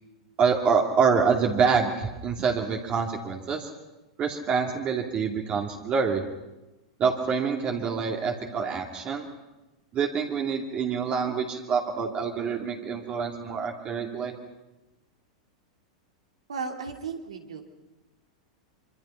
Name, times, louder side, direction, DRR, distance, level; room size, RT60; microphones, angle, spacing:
voice 1, 0.4-3.7 4.2-6.2 7.0-9.3 9.9-14.4, right 5 dB, 35° right, 1 dB, 2.6 m, -26 dB
voice 2, 16.5-17.6, right 5 dB, 80° right, 4 dB, 2.9 m, -35 dB
25.5 x 24.0 x 5.8 m, 1.0 s
hypercardioid pair, 100°, 3 cm